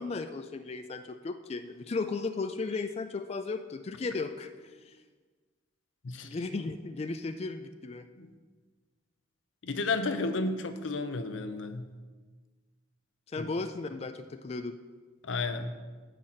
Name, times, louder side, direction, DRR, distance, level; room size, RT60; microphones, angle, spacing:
voice 1, 0.0-5.0 6.2-8.0 13.3-14.8, left 3 dB, 35° left, 9 dB, 0.3 m, -35 dB
voice 2, 9.6-11.9 13.4-13.5 15.2-15.7, left 3 dB, 85° left, 9 dB, 0.7 m, -32 dB
9.9 x 4.1 x 7.6 m, 1.4 s
head